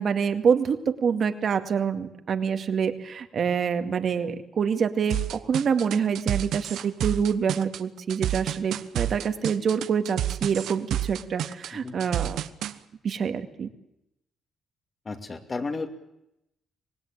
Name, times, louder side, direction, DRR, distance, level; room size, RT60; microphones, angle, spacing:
voice 1, 0.0-12.4 13.0-13.7, right 6 dB, 55° right, 7 dB, 2.1 m, -26 dB
sound 1, 5.1-12.7, right 11 dB, 80° right, 1.0 m, -29 dB
voice 2, 15.1-15.9, left 3 dB, 35° left, 6 dB, 2.6 m, -32 dB
25.0 x 19.0 x 8.9 m, 0.86 s
cardioid pair, 90°, 0 cm